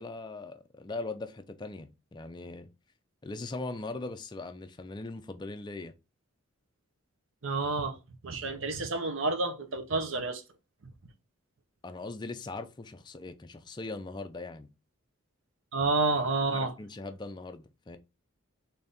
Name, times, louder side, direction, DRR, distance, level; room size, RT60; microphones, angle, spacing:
voice 1, 0.0-2.7 3.2-5.9 11.8-14.7 16.5-18.0, left 3 dB, 20° left, 0.3 m, -40 dB
voice 2, 7.4-8.0 8.2-10.4 15.7-16.7, right 3 dB, 65° right, 0.7 m, -29 dB
3.9 x 2.7 x 3.4 m
head